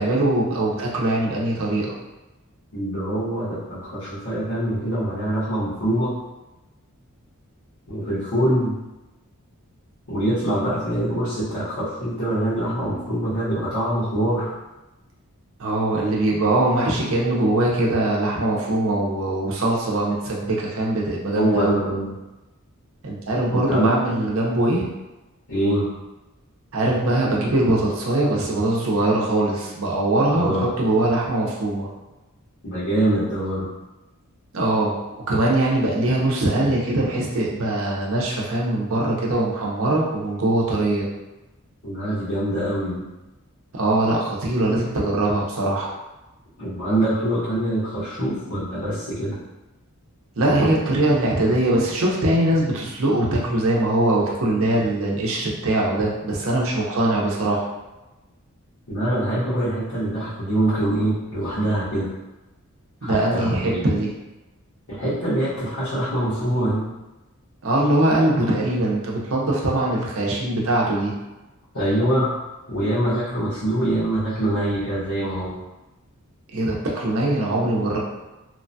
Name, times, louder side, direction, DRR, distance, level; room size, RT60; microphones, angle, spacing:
voice 1, 0.0-1.9 15.6-21.8 23.0-24.8 26.7-31.9 34.5-35.0 35.3-41.1 43.7-45.9 50.4-57.6 63.0-64.1 67.6-71.1 76.5-78.0, right 1 dB, 65° right, -3 dB, 0.6 m, -22 dB
voice 2, 2.7-6.1 7.9-8.7 10.1-14.5 21.3-22.1 23.5-24.0 25.5-25.9 30.3-30.7 32.6-33.7 41.8-43.0 46.6-49.4 58.9-62.1 63.0-63.8 64.9-66.8 71.7-72.3 72.7-75.6, right 1 dB, 90° left, -14 dB, 1.2 m, -24 dB
2.9 x 2.2 x 2.6 m, 1.0 s
head